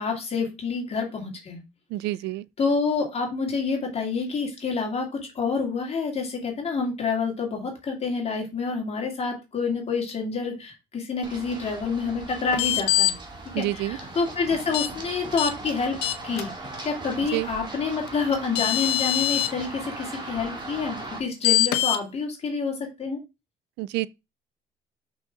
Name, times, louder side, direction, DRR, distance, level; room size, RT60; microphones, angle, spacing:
voice 1, 0.0-1.6 2.6-13.2 13.6-16.0 16.2-16.5 16.8-23.2, left 4 dB, 40° left, 2.4 m, -28 dB
voice 2, 1.9-2.4 13.5-14.0 17.3-17.5 23.8-24.1, right 17 dB, 80° right, 0.4 m, -28 dB
Run, 11.2-21.2, right 2 dB, 25° right, 2.1 m, -39 dB
sound 1, 12.5-13.1 14.7-14.9 15.4-15.5 16.0-16.4 18.1-18.2 18.5-19.5 21.4-22.0, left 15 dB, 85° left, 0.8 m, -23 dB
5.9 x 5.2 x 3.6 m
cardioid pair, 110°, 17 cm